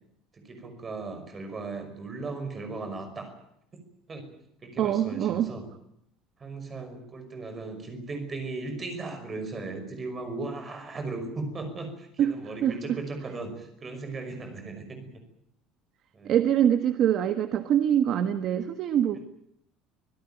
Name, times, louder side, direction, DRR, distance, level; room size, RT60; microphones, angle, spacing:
voice 1, 0.3-3.3 3.7-4.3 4.6-5.7 6.4-15.1 16.1-16.4, right 3 dB, 20° right, 6 dB, 5.6 m, -37 dB
voice 2, 4.8-5.5 12.2-12.3 12.6-12.7 16.2-19.2, right 10 dB, 40° right, 9 dB, 1.3 m, -24 dB
25.5 x 17.0 x 9.1 m, 0.75 s
cardioid pair, 175°, 0 cm